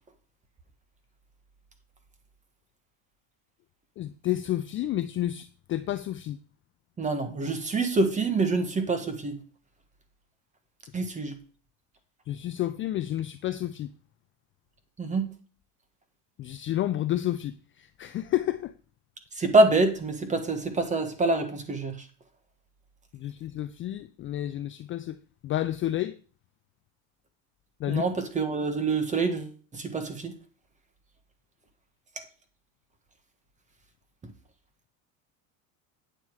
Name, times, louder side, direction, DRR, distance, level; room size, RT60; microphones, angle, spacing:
voice 1, 4.0-6.4 12.3-13.9 16.4-18.7 23.1-25.2 25.4-26.1 27.8-28.0, left 13 dB, 30° left, 0.4 m, -30 dB
voice 2, 7.0-9.4 10.9-11.4 15.0-15.3 19.4-21.9 27.9-30.3, right 3 dB, 15° right, 1.5 m, -26 dB
9.2 x 6.9 x 4.7 m
cardioid pair, 140°, 41 cm